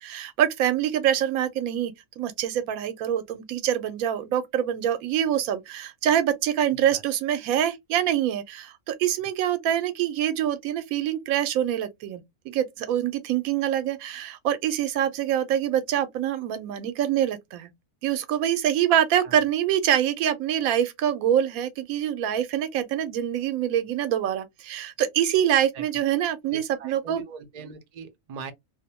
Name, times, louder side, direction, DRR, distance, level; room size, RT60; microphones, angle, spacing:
voice 1, 0.0-17.7 18.0-27.2, right 10 dB, 90° right, 1.0 m, -25 dB
voice 2, 6.7-7.0 19.2-19.4 25.7-25.8 26.5-28.5, right 6 dB, 60° right, 0.4 m, -41 dB
2.5 x 2.1 x 2.8 m
omnidirectional pair, 1.4 m